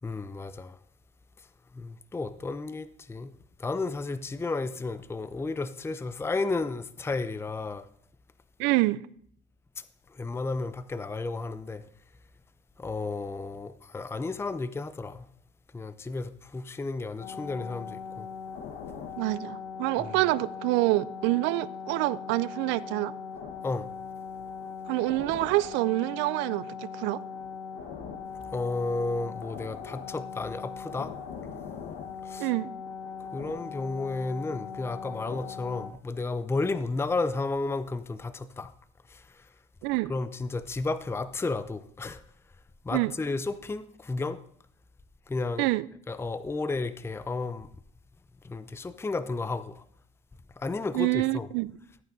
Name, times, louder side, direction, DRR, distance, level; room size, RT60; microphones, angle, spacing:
voice 1, 0.0-0.8 1.8-3.3 3.6-7.9 10.2-11.8 12.8-15.2 15.7-18.3 20.0-20.2 23.6-23.9 28.5-31.1 32.2-32.5 33.3-38.7 39.1-39.2 40.1-42.2 42.9-44.4 45.3-45.7 46.1-47.7 48.4-49.8 50.6-51.5, left 3 dB, 15° left, 0.5 m, -32 dB
voice 2, 8.6-9.0 19.2-23.1 24.9-27.2 32.4-32.7 39.8-40.1 42.9-43.1 45.6-45.9 50.9-51.7, right 20 dB, 75° right, 0.4 m, -27 dB
sound 1, 17.2-35.9, left 6 dB, 80° left, 1.2 m, -40 dB
14.0 x 8.9 x 2.6 m
supercardioid pair, 70°, 19 cm